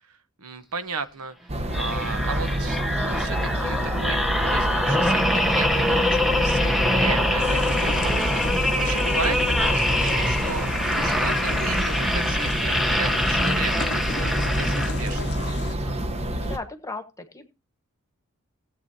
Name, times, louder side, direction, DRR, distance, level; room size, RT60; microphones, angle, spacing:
voice 1, 0.1-15.2, right 4 dB, 85° right, 1.0 m, -35 dB
sound 1, 1.5-16.6, equal, 30° right, 0.9 m, -28 dB
sound 2, 1.7-15.3 15.8-16.0, left 1 dB, ahead, 0.8 m, -24 dB
sound 3, 7.4-15.7, left 4 dB, 50° left, 0.7 m, -36 dB
voice 2, 16.4-17.5, left 3 dB, 15° left, 1.3 m, -36 dB
17.5 x 8.2 x 2.7 m
head